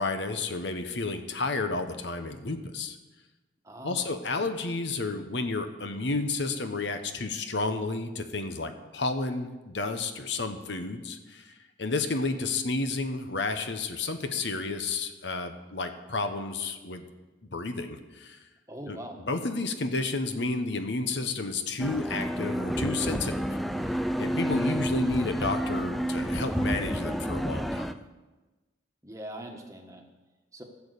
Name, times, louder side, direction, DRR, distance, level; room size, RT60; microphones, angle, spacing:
voice 1, 0.0-3.0 3.8-11.5 11.8-17.0 17.5-18.4 18.9-19.0 19.3-23.4 24.2-28.0, left 3 dB, 70° left, 8 dB, 1.0 m, -31 dB
voice 2, 3.6-4.1 18.7-19.2 29.0-30.0 30.5-30.6, right 1 dB, 15° right, 3 dB, 1.3 m, -41 dB
sound 1, 21.8-27.9, equal, ahead, 0.3 m, -30 dB
15.0 x 7.3 x 6.6 m, 1.2 s
head